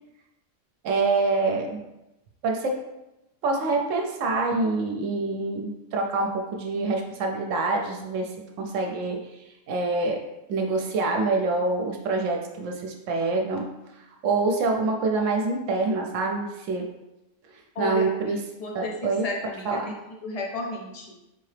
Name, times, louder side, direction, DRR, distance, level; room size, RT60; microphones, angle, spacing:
voice 1, 0.8-1.8 2.4-2.8 3.4-8.3 8.6-9.2 9.7-10.2 10.5-13.7 14.2-16.9 17.8-18.4 18.7-19.2 19.6-19.8, right 3 dB, 75° right, 1 dB, 0.9 m, -26 dB
voice 2, 17.8-18.3 18.6-19.8 20.2-21.1, left 2 dB, 75° left, 0 dB, 0.3 m, -33 dB
4.1 x 2.8 x 3.2 m, 0.94 s
omnidirectional pair, 1.4 m